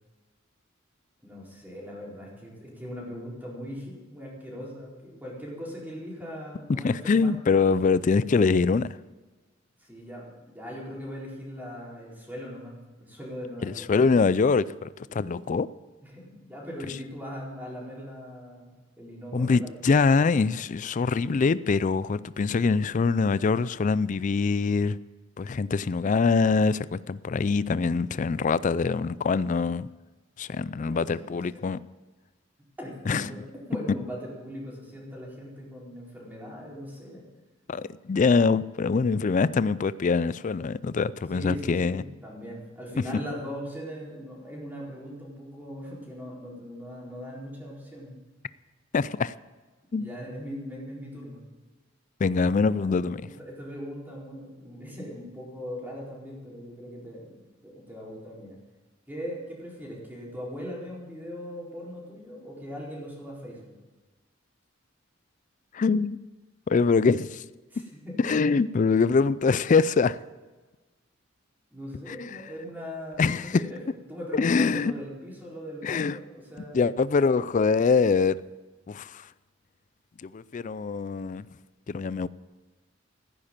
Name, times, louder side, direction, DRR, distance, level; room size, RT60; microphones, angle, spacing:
voice 1, 1.2-7.3 9.8-13.9 15.1-15.4 16.0-19.7 30.7-31.6 32.8-33.4 33.7-37.2 41.3-48.1 50.0-51.4 52.6-52.9 53.4-58.6 59.1-63.7 67.7-68.1 71.7-73.2 73.6-73.8 74.1-76.9, equal, 10° right, 4.3 m, -40 dB
voice 2, 6.7-9.0 13.6-15.7 19.3-25.0 25.4-29.9 30.4-31.8 33.1-33.2 37.7-42.0 48.9-49.3 49.9-50.1 52.2-53.2 65.7-66.2 66.7-67.5 68.2-70.2 72.1-72.4 73.2-73.6 74.3-74.9 75.8-76.2 76.7-78.4 78.9-79.3 80.2-81.4 81.9-82.3, left 4 dB, 40° left, 0.4 m, -24 dB
15.0 x 10.0 x 7.3 m
head